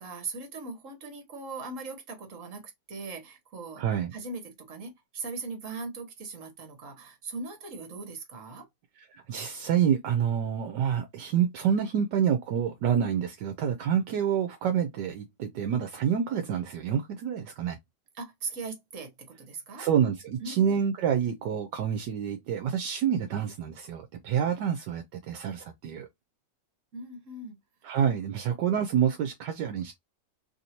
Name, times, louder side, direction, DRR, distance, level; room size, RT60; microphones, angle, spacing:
voice 1, 0.0-3.8 4.1-8.7 18.1-19.8 20.4-20.8 26.9-27.6, right 3 dB, 50° right, 1.4 m, -39 dB
voice 2, 3.8-4.1 9.1-17.8 19.8-26.1 27.8-29.9, right 8 dB, 75° right, 1.2 m, -27 dB
3.4 x 2.6 x 2.8 m
omnidirectional pair, 1.9 m